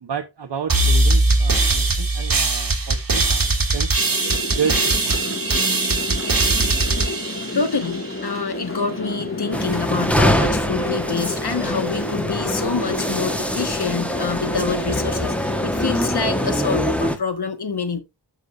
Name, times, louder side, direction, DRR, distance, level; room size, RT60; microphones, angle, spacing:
voice 1, 0.0-5.4 5.7-5.9 6.6-6.9, right 7 dB, 75° right, 0.7 m, -31 dB
sound 1, 0.7-8.2, right 2 dB, 55° right, 1.5 m, -20 dB
sound 2, 4.0-16.7, left 2 dB, 30° left, 1.7 m, -31 dB
voice 2, 7.5-18.0, left 5 dB, 65° left, 1.3 m, -26 dB
sound 3, 9.5-17.2, equal, 5° left, 1.1 m, -24 dB
13.0 x 5.3 x 2.4 m
wide cardioid pair, 55°, 41 cm